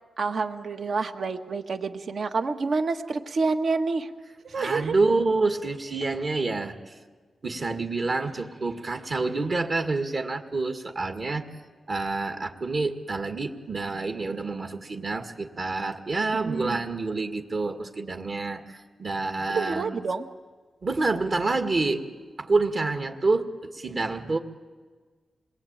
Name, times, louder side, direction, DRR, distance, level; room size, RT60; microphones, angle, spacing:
voice 1, 0.2-4.1 4.4-5.0 16.4-16.8 19.5-20.3, right 4 dB, 70° right, 7 dB, 1.5 m, -28 dB
voice 2, 4.5-6.9 7.4-11.4 11.9-20.0 20.8-22.1 22.4-24.4, right 3 dB, 55° right, 5 dB, 2.0 m, -27 dB
27.0 x 21.0 x 9.0 m, 1.4 s
cardioid pair, 85°, 0 cm